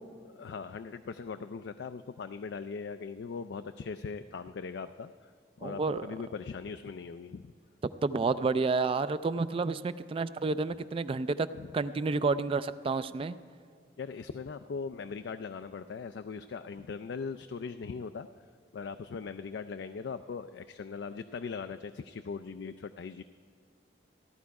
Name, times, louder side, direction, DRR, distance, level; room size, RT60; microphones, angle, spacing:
voice 1, 0.2-5.3 5.6-7.5 11.5-11.7 14.0-18.3 18.7-23.2, left 5 dB, 80° left, 10 dB, 0.4 m, -40 dB
voice 2, 5.6-6.0 8.0-11.5 11.7-13.3, right 4 dB, 30° right, 13 dB, 0.3 m, -30 dB
15.5 x 11.5 x 4.7 m, 2.1 s
head